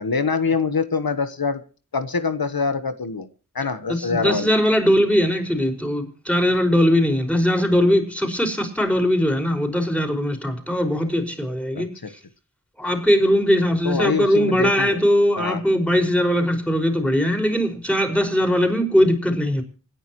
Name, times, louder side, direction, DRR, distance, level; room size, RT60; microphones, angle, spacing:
voice 1, 0.0-1.6 1.9-3.3 3.5-4.5 11.8-12.1 13.8-15.0 15.4-15.6, left 5 dB, 90° left, 11 dB, 1.2 m, -24 dB
voice 2, 3.9-11.9 12.8-19.6, equal, 5° left, 3 dB, 5.3 m, -20 dB
27.5 x 10.5 x 3.1 m, 0.38 s
wide cardioid pair, 50°, 35 cm